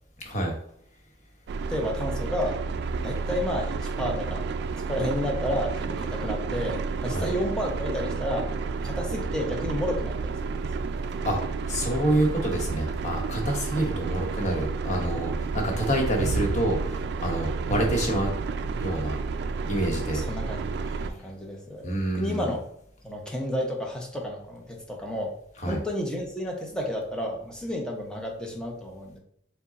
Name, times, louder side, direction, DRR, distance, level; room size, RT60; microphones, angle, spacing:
voice 1, 0.2-0.5 7.1-7.3 11.2-11.4 11.7-18.3 18.8-19.2 19.7-20.2 20.9-21.0 21.8-22.5 25.6-25.8, right 1 dB, 40° left, 1 dB, 1.1 m, -27 dB
sound 1, 1.5-21.1, right 4 dB, 65° right, 0.3 m, -31 dB
voice 2, 1.7-2.6 3.0-4.5 4.9-8.5 8.8-10.6 20.1-20.6 21.0-21.9 22.1-22.6 23.0-25.3 25.6-29.2, equal, 5° left, -1 dB, 0.8 m, -31 dB
4.9 x 2.3 x 4.0 m, 0.67 s
head